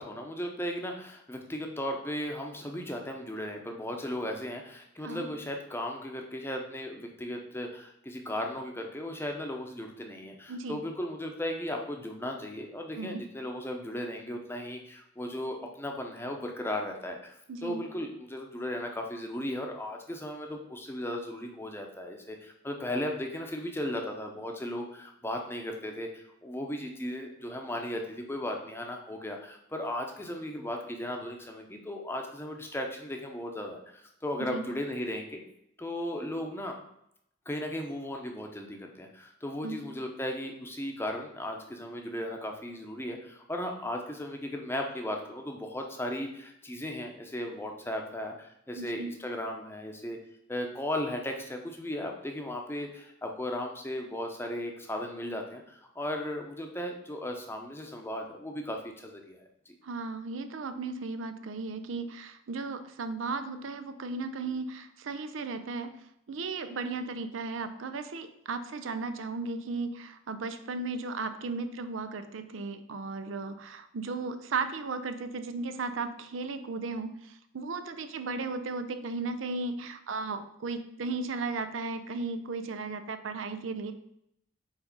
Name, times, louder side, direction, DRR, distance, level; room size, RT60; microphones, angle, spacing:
voice 1, 0.0-35.4 35.8-36.8 37.5-50.2 50.5-59.7, left 1 dB, 10° left, 2 dB, 0.7 m, -36 dB
voice 2, 10.5-10.8 13.0-13.3 17.5-17.9 34.4-34.6 39.6-39.8 48.8-49.1 59.8-66.0 66.3-83.9, right 3 dB, 80° right, 10 dB, 0.5 m, -35 dB
5.0 x 3.9 x 5.2 m, 0.76 s
head